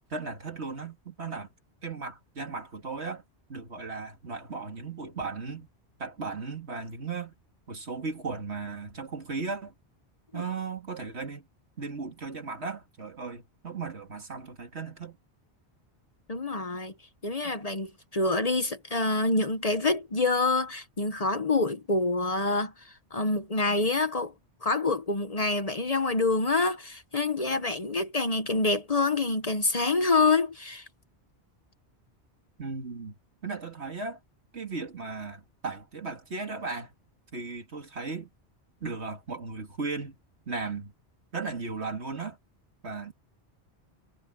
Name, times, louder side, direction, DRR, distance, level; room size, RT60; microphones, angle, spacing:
voice 1, 0.1-1.5 1.8-3.2 3.5-5.7 6.0-7.3 7.7-9.7 10.3-11.5 11.8-15.2 17.4-17.6 32.6-34.2 34.5-36.9 37.3-38.3 38.8-40.2 40.5-40.9 41.3-42.4 42.8-43.1, right 4 dB, 75° right, 2.8 m, -36 dB
voice 2, 16.3-16.9 17.2-24.3 24.6-30.9, left 3 dB, 35° left, 1.1 m, -27 dB
omnidirectional pair, 1.1 m